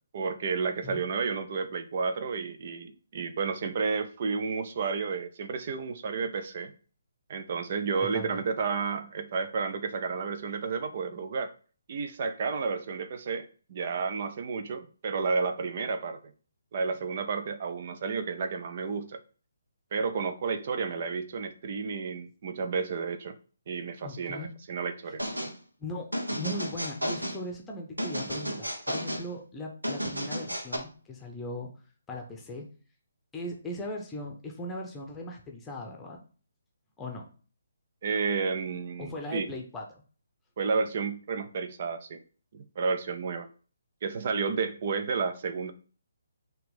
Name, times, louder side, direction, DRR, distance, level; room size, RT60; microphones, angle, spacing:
voice 1, 0.1-6.7 7.3-11.5 11.9-16.2 16.7-19.2 19.9-23.3 23.7-25.2 38.0-39.5 40.6-42.2 42.5-43.5 44.0-45.7, right 5 dB, 45° right, 9 dB, 0.7 m, -31 dB
voice 2, 8.0-8.4 24.0-24.5 25.8-31.7 32.1-32.7 33.3-36.2 37.0-37.3 39.0-39.9, left 1 dB, 10° left, 1 dB, 0.9 m, -38 dB
sound 1, 25.2-25.5 26.1-27.4 28.0-29.3 29.8-30.8, equal, 85° right, 1.3 m, -32 dB
5.8 x 3.1 x 5.2 m, 0.39 s
figure-of-eight pair, 140°, 0 cm